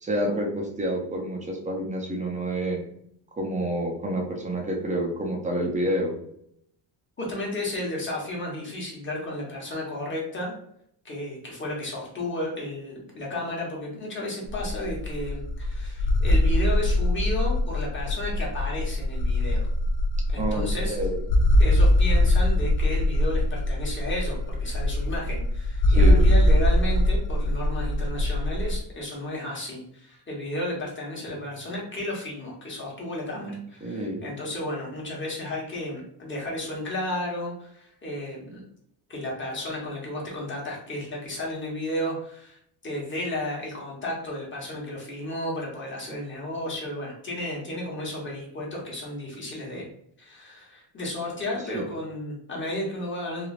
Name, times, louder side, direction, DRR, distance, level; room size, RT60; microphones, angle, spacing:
voice 1, 0.0-2.8 3.4-6.1 20.4-21.2 25.9-26.3 33.3-34.2 51.7-51.9, right 1 dB, 15° right, 0 dB, 0.5 m, -28 dB
voice 2, 7.2-10.5 11.0-19.7 20.3-21.0 21.6-38.6 39.1-49.9 50.2-53.5, left 1 dB, 25° left, -3 dB, 1.0 m, -33 dB
sound 1, 14.5-28.8, left 1 dB, 55° left, 0.5 m, -22 dB
3.2 x 2.4 x 2.4 m, 0.71 s
cardioid pair, 145°, 46 cm